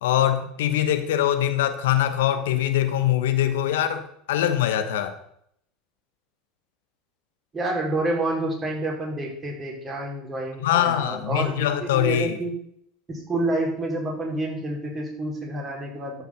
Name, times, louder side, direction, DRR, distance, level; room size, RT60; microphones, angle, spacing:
voice 1, 0.0-5.1 10.6-12.4, left 11 dB, 75° left, 1.1 m, -23 dB
voice 2, 7.5-12.6 13.1-16.2, right 2 dB, 30° right, 4.5 m, -28 dB
13.5 x 5.7 x 5.9 m
hypercardioid pair, 80°, 0 cm